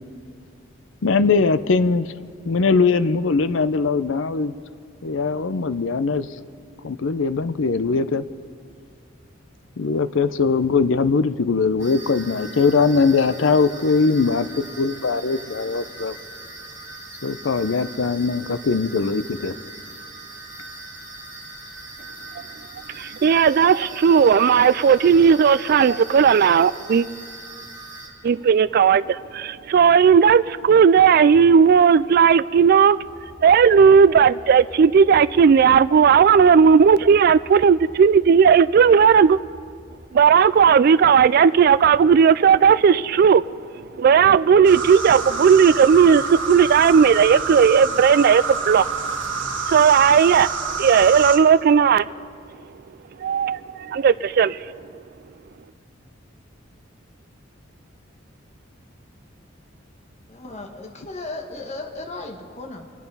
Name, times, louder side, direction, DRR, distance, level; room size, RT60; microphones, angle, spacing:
voice 1, 1.0-2.1 2.5-4.5 5.0-6.3 6.8-8.2 9.8-14.5 14.8-16.2 17.2-19.6, left 4 dB, 75° left, 0.6 m, -21 dB
sound 1, 11.8-28.1, right 2 dB, 10° right, 5.4 m, -40 dB
voice 2, 22.9-27.1 28.2-33.0 33.4-39.4 40.1-43.4 44.0-48.8 49.7-50.5 50.8-52.1 53.2-54.7, right 6 dB, 50° right, 0.3 m, -15 dB
sound 2, 33.0-40.0, left 1 dB, 60° left, 5.2 m, -46 dB
sound 3, 44.6-51.4, right 4 dB, 65° right, 1.6 m, -27 dB
voice 3, 60.3-62.9, left 2 dB, 35° left, 1.3 m, -35 dB
26.5 x 9.2 x 5.5 m
head